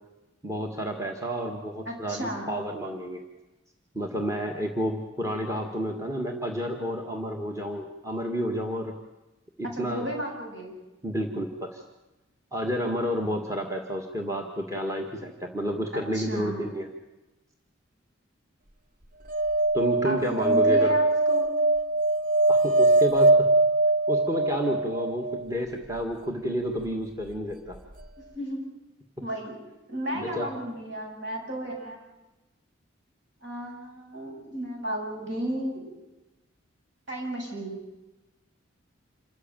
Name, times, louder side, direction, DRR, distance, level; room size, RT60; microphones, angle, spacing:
voice 1, 0.4-3.2 3.9-9.0 9.6-10.1 11.0-11.8 12.5-16.9 19.7-20.9 22.5-23.5 24.1-27.8 30.1-30.5, equal, 15° right, 3 dB, 2.0 m, -30 dB
voice 2, 1.9-2.6 9.6-10.7 15.9-16.7 20.0-21.5 28.3-28.6 29.2-29.6 29.9-32.0 33.4-35.9 37.1-37.8, right 1 dB, 60° right, 0 dB, 7.8 m, -33 dB
sound 1, 19.3-25.5 27.7-27.8 28.0-28.1, right 2 dB, 40° right, 0.9 m, -22 dB
27.5 x 14.5 x 9.2 m, 1.1 s
head